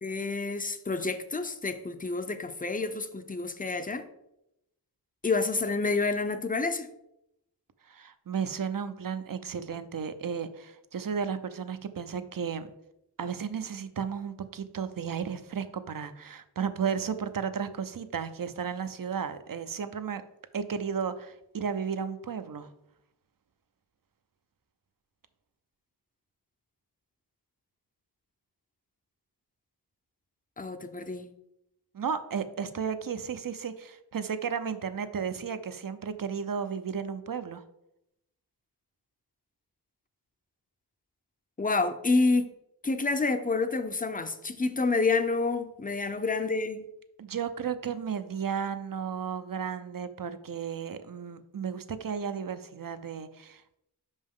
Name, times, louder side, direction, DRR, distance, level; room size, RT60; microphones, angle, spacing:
voice 1, 0.0-4.1 5.2-6.9 30.6-31.3 41.6-42.5 42.8-46.8, left 3 dB, 20° left, 9 dB, 0.5 m, -28 dB
voice 2, 7.8-12.7 13.2-20.2 20.5-22.7 31.9-37.6 47.2-53.7, right 7 dB, 55° right, 11 dB, 0.6 m, -34 dB
5.3 x 5.3 x 3.6 m, 0.84 s
wide cardioid pair, 60°, 41 cm